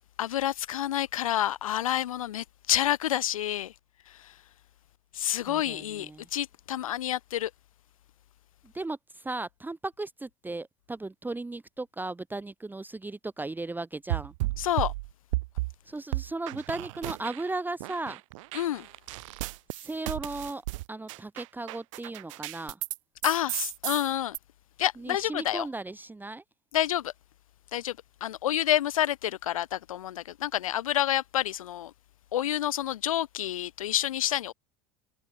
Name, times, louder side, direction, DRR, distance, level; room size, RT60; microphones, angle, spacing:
voice 1, 0.2-3.7 4.2-4.3 5.1-7.5 14.6-14.9 18.5-18.9 23.2-24.4 24.8-25.7 26.7-27.1 27.7-28.0 28.2-31.9 32.3-34.5, left 12 dB, 80° left, 0.7 m, -28 dB
voice 2, 5.5-6.3 8.7-14.3 15.9-18.2 19.8-20.6 20.9-22.8 25.0-26.4, right 2 dB, 10° right, 1.2 m, -36 dB
sound 1, 14.1-15.7 16.1-17.5 17.8-23.0 23.2-24.4, right 21 dB, 70° right, 0.6 m, -34 dB
hypercardioid pair, 75°, 17 cm